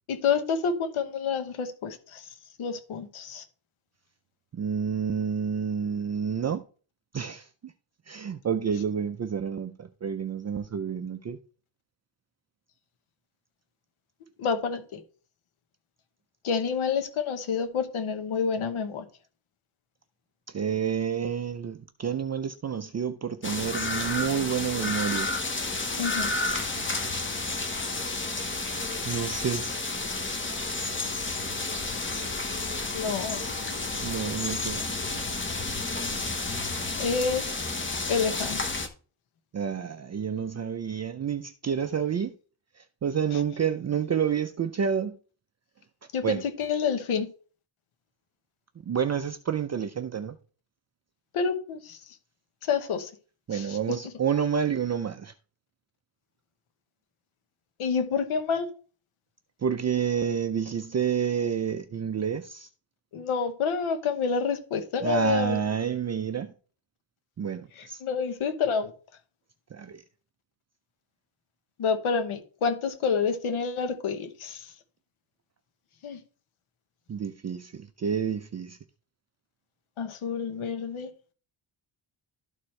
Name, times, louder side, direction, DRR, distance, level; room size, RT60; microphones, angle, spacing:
voice 1, 0.1-2.3 2.6-3.4 14.4-15.0 16.4-19.0 26.0-26.3 32.9-33.4 37.0-37.7 38.1-38.8 43.3-43.4 46.1-47.3 51.3-52.0 52.7-53.1 53.5-54.0 57.8-58.7 63.1-65.6 67.8-68.9 71.8-74.7 76.0-76.2 80.0-81.1, left 6 dB, 75° left, 1.2 m, -28 dB
voice 2, 4.5-6.6 7.1-7.5 8.1-11.4 20.5-25.3 29.1-29.7 34.0-34.8 39.5-42.3 43.0-45.1 46.2-46.4 48.9-50.4 53.5-55.3 59.6-62.7 65.0-66.5 67.4-68.0 69.7-70.0 77.1-78.8, right 7 dB, 35° right, 0.4 m, -29 dB
sound 1, 23.4-38.9, left 3 dB, 25° left, 1.0 m, -31 dB
12.5 x 4.4 x 3.2 m
wide cardioid pair, 130°, 49 cm